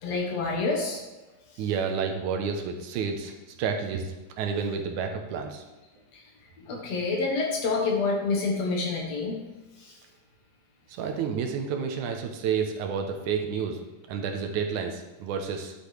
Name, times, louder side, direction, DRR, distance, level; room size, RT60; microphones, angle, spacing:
voice 1, 0.0-1.0 1.5-1.6 6.1-6.2 6.6-9.4 9.8-10.0, left 3 dB, 60° left, 0 dB, 2.2 m, -28 dB
voice 2, 1.6-3.3 3.6-5.6 11.0-13.8 14.1-15.7, right 6 dB, 80° right, 4 dB, 2.2 m, -30 dB
10.5 x 7.8 x 3.3 m, 1.1 s
omnidirectional pair, 3.6 m